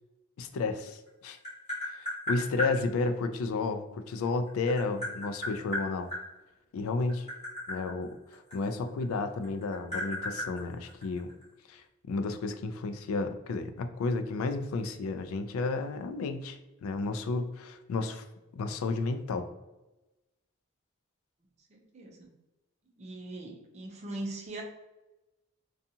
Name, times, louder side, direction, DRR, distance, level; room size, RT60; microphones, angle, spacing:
voice 1, 0.4-1.4 2.0-6.1 6.7-7.3 7.7-11.3 11.7-18.2 18.5-19.5, left 3 dB, 85° left, 9 dB, 0.3 m, -32 dB
Tap, 0.9-2.7 4.1-6.2 7.0-9.1 9.4-11.4, left 1 dB, 30° left, 1.4 m, -35 dB
voice 2, 21.7-22.3 23.0-24.6, right 2 dB, 30° right, 0 dB, 0.4 m, -40 dB
2.6 x 2.3 x 2.6 m, 1.0 s
head